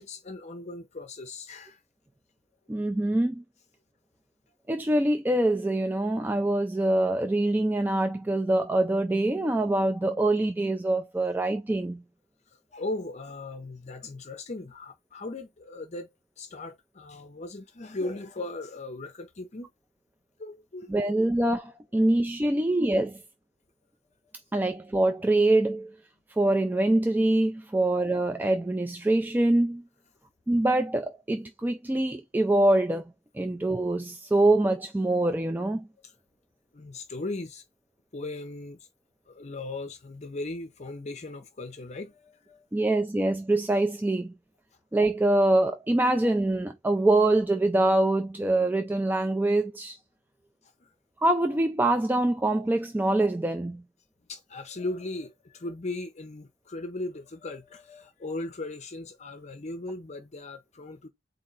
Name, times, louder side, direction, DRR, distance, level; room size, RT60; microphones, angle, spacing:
voice 1, 0.0-1.8 12.5-16.1 16.4-19.7 20.4-21.1 22.5-22.6 24.6-24.7 27.8-27.9 36.0-36.1 36.7-37.6 38.1-38.8 39.3-42.6 50.8-50.9 54.3-61.1, left 2 dB, 40° left, 0.6 m, -38 dB
voice 2, 2.7-3.4 4.7-12.0 20.9-23.2 24.5-25.9 26.4-29.8 30.5-33.0 33.3-35.9 42.7-44.3 44.9-50.0 51.2-53.8, right 2 dB, 10° right, 0.3 m, -24 dB
4.3 x 2.7 x 3.9 m
head